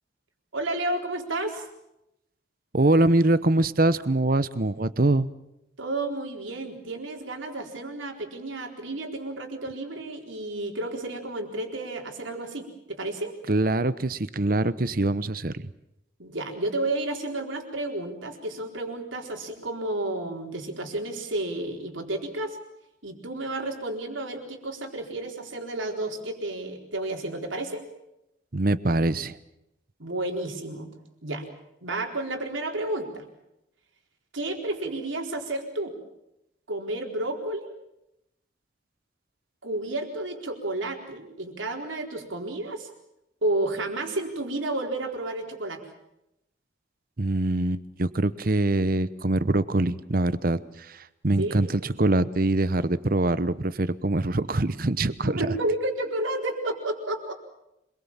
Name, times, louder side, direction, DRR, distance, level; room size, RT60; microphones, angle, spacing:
voice 1, 0.5-1.7 5.8-13.3 16.2-22.6 23.0-27.8 30.0-30.9 31.2-31.5 31.8-33.3 34.3-35.9 36.7-37.7 39.6-42.9 43.4-45.8 51.4-51.7 55.2-57.3, right 2 dB, 85° right, 3 dB, 4.2 m, -31 dB
voice 2, 2.7-5.3 13.5-15.7 28.5-29.4 47.2-55.5, right 2 dB, 45° right, 15 dB, 0.9 m, -24 dB
26.5 x 21.5 x 7.4 m, 0.87 s
head